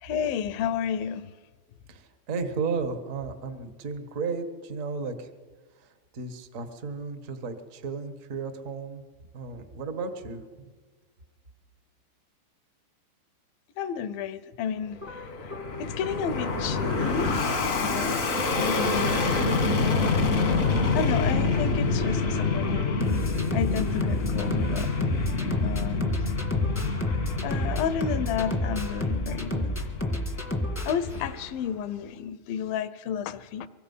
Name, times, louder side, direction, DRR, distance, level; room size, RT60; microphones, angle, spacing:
voice 1, 0.0-1.3 13.8-15.5 15.8-20.2 20.9-23.2 23.5-24.9 25.6-26.1 27.4-29.7 30.9-33.7, left 7 dB, 85° left, 14 dB, 2.6 m, -32 dB
voice 2, 1.9-5.3 5.8-9.0 9.3-10.6, right 4 dB, 75° right, 8 dB, 0.7 m, -34 dB
Fixed-wing aircraft airplane, 14.9-31.5, left 3 dB, 60° left, 0.8 m, -27 dB
sound 1, 15.0-31.7, left 1 dB, 15° left, 0.4 m, -33 dB
24.5 x 22.0 x 5.6 m, 1.4 s
omnidirectional pair, 4.0 m